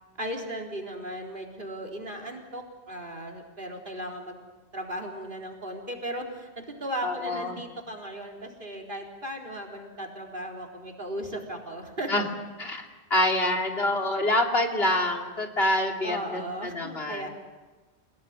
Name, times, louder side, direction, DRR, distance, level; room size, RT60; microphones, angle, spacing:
voice 1, 0.2-4.4 4.7-12.3 16.0-17.3, right 1 dB, 50° right, 3 dB, 4.3 m, -36 dB
voice 2, 7.0-7.6 12.1-12.2 12.6-17.3, left 1 dB, 65° left, 2 dB, 3.3 m, -26 dB
29.5 x 18.0 x 9.5 m, 1.2 s
omnidirectional pair, 1.1 m